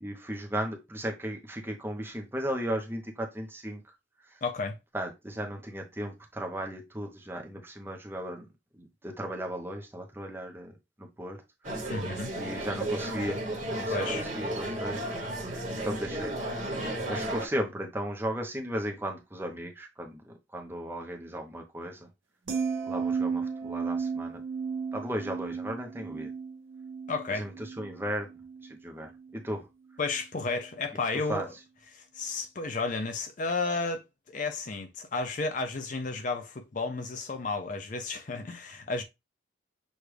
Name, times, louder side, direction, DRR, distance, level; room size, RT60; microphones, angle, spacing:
voice 1, 0.0-3.8 4.9-8.5 8.8-10.7 11.0-11.4 11.7-11.9 12.4-13.4 13.7-15.0 15.7-16.3 17.1-22.1 22.9-24.4 24.9-26.3 27.3-28.3 28.8-29.6 31.3-31.5, equal, 10° right, 0.8 m, -36 dB
voice 2, 4.4-4.8 11.9-12.3 13.9-14.2 27.1-27.5 30.0-31.5 31.9-39.0, left 3 dB, 40° left, 0.5 m, -32 dB
sound 1, 11.6-17.5, right 1 dB, 40° right, 1.3 m, -33 dB
sound 2, 22.5-28.8 29.1-29.4, right 5 dB, 80° right, 1.1 m, -34 dB
6.3 x 2.4 x 3.3 m
head